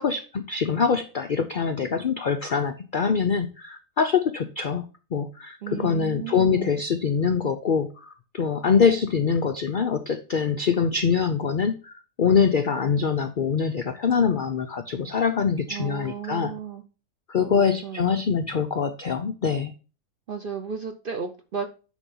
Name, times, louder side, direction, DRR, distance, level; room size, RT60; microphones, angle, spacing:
voice 1, 0.0-16.5 17.3-19.7, left 6 dB, 75° left, 8 dB, 0.4 m, -24 dB
voice 2, 5.6-6.8 15.7-16.8 17.4-18.2 20.3-21.7, right 7 dB, 55° right, 7 dB, 0.6 m, -34 dB
9.2 x 3.5 x 5.4 m, 0.36 s
omnidirectional pair, 1.6 m